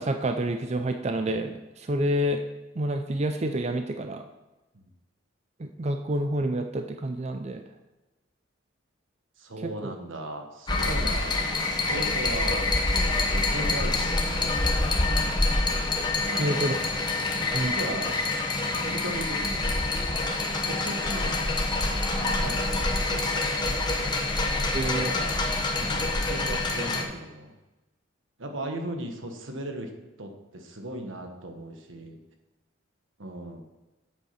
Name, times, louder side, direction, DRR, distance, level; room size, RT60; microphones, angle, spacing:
voice 1, 0.0-2.4 2.8-4.2 5.6-7.6 9.6-10.0 16.1-16.8 17.5-17.7 24.7-25.1, right 1 dB, 35° right, 6 dB, 0.5 m, -28 dB
voice 2, 9.4-15.1 16.3-16.8 17.2-18.2 18.7-20.1 20.6-21.6 22.2-24.2 24.9-25.4 25.8-27.5 28.4-29.9 30.2-32.2 33.2-33.6, right 1 dB, 85° right, 4 dB, 1.4 m, -38 dB
sound 1, 10.7-27.0, left 2 dB, 20° left, 1.0 m, -26 dB
8.3 x 7.2 x 5.8 m, 1.1 s
head